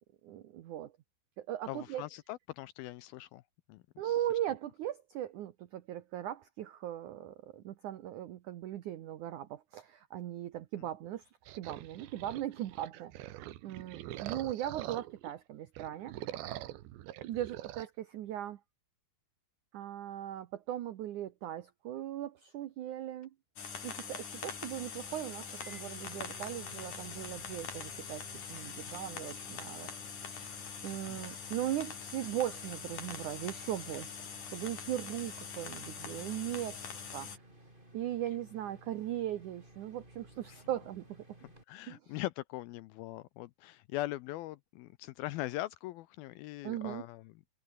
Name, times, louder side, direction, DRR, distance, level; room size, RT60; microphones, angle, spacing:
voice 1, 0.2-0.9 1.4-2.0 4.0-11.3 11.6-13.1 13.6-16.5 17.2-18.6 19.7-23.3 23.8-29.9 30.2-34.2 34.5-36.8 37.1-37.3 37.9-41.2 41.9-42.1 46.6-47.0, right 12 dB, 70° right, 1.9 m, -39 dB
voice 2, 1.7-3.4 3.7-4.2 31.1-31.2 40.5-40.6 41.4-47.3, left 17 dB, 85° left, 2.2 m, -41 dB
sound 1, 11.5-15.3 15.7-17.9, right 14 dB, 85° right, 3.6 m, -44 dB
sound 2, 23.6-37.4, left 6 dB, 50° left, 5.0 m, -44 dB
sound 3, 25.4-41.6, right 1 dB, 10° right, 7.2 m, -57 dB
omnidirectional pair, 4.9 m